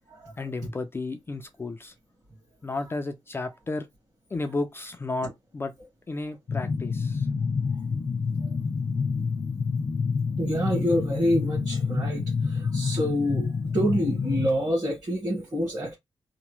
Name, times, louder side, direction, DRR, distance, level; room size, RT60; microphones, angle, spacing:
voice 1, 0.4-1.9 2.6-3.9 4.3-5.7 6.1-7.3, left 3 dB, 25° left, 0.4 m, -33 dB
sound 1, 6.5-14.5, left 5 dB, 60° left, 0.7 m, -28 dB
voice 2, 10.4-13.5 13.7-15.9, equal, 35° right, 1.2 m, -27 dB
2.9 x 2.1 x 3.1 m
wide cardioid pair, 135°, 9 cm